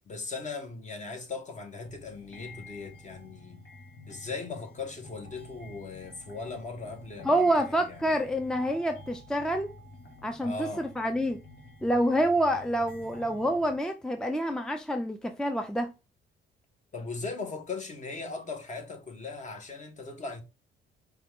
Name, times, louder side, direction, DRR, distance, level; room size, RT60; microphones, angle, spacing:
voice 1, 0.0-3.6 4.1-7.5 7.9-8.0 10.4-10.8 16.9-20.4, left 4 dB, 35° left, 1.2 m, -38 dB
sound 1, 1.8-13.8, left 1 dB, 65° left, 1.4 m, -49 dB
voice 2, 7.2-9.7 10.2-11.4 11.8-15.9, right 1 dB, 5° left, 0.5 m, -27 dB
4.8 x 2.4 x 3.5 m
cardioid pair, 90°, 20 cm